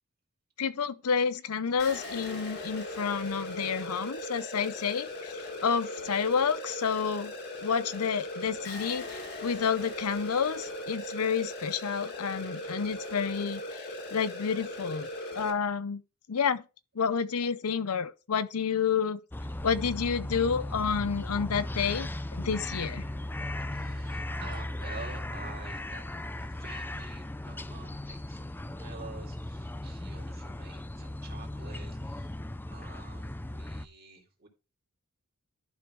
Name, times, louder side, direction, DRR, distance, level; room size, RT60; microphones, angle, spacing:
voice 1, 0.6-7.3 7.6-15.1 15.3-16.0 16.3-16.6 16.9-19.2 19.6-23.0, left 6 dB, 75° left, 0.6 m, -30 dB
sound 1, 1.8-15.5, left 1 dB, 50° left, 1.9 m, -39 dB
sound 2, 19.3-33.9, left 1 dB, 10° left, 0.4 m, -37 dB
voice 2, 23.7-32.4 32.7-34.5, right 4 dB, 45° right, 2.3 m, -49 dB
11.5 x 5.2 x 3.1 m
head